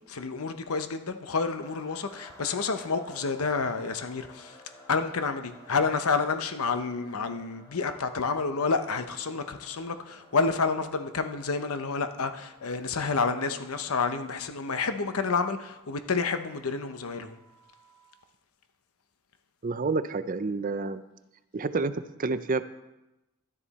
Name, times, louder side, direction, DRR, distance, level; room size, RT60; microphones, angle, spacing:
voice 1, 0.1-4.6 4.9-17.4, left 4 dB, 85° left, 0.8 m, -29 dB
sound 1, 1.6-18.3, equal, 15° left, 4.1 m, -55 dB
voice 2, 19.6-21.0 21.5-22.6, right 3 dB, 40° right, 0.4 m, -29 dB
12.0 x 10.0 x 4.2 m
head